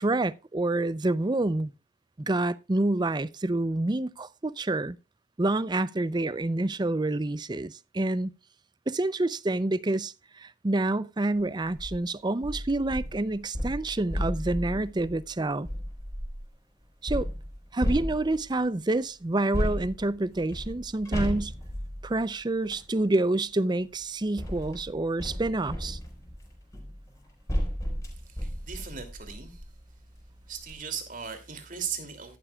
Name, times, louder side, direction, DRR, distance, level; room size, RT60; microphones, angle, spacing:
voice 1, 0.0-1.7 2.2-5.0 5.4-8.3 8.9-15.7 17.0-17.3 17.7-21.5 22.0-26.0, right 2 dB, 25° right, 0.5 m, -28 dB
sound 1, 11.6-12.0 12.4-16.5 17.1-18.6 19.5-22.9 23.8-29.8 30.2-30.3 30.6-30.7, equal, 15° left, 4.7 m, -34 dB
voice 2, 28.2-29.7 30.5-32.4, right 7 dB, 45° right, 2.7 m, -38 dB
14.5 x 12.0 x 2.3 m
head